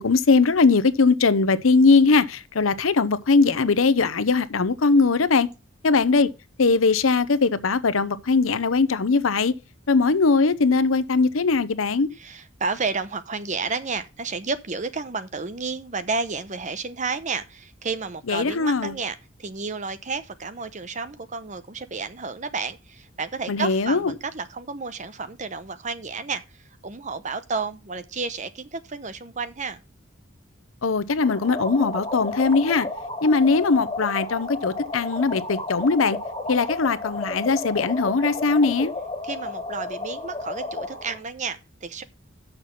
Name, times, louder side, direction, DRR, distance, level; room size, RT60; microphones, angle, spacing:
voice 1, 0.0-5.5 5.8-6.3 6.6-9.5 9.9-12.1 18.3-18.9 23.5-24.0 30.8-32.9 33.2-36.2 36.5-38.9, left 4 dB, 85° left, 0.8 m, -20 dB
voice 2, 12.1-29.8 39.2-42.0, right 4 dB, 35° right, 0.8 m, -31 dB
sound 1, 31.2-41.2, left 2 dB, 20° left, 3.0 m, -32 dB
6.7 x 5.9 x 7.2 m
head